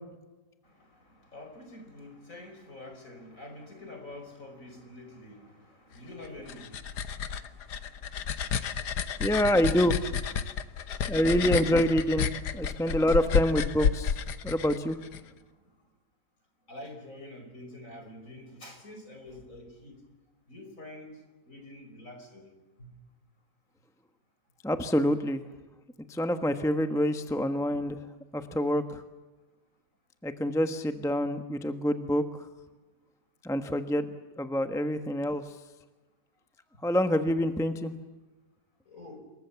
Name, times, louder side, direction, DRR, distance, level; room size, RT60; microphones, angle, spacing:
voice 1, 1.3-9.2 10.5-10.6 12.4-12.5 15.1-15.2 16.7-20.0 20.5-21.1 21.5-22.5 38.9-39.2, left 1 dB, 50° left, 5 dB, 5.5 m, -47 dB
sound 1, 6.2-15.2, left 7 dB, 85° left, 1.6 m, -31 dB
voice 2, 9.2-10.0 11.1-12.3 12.5-14.1 14.4-15.0 24.6-25.4 26.1-28.0 28.3-29.0 30.2-32.2 33.4-34.1 34.4-35.4 36.8-37.9, equal, ahead, 7 dB, 1.1 m, -26 dB
28.0 x 23.0 x 7.1 m, 1.2 s
omnidirectional pair, 1.7 m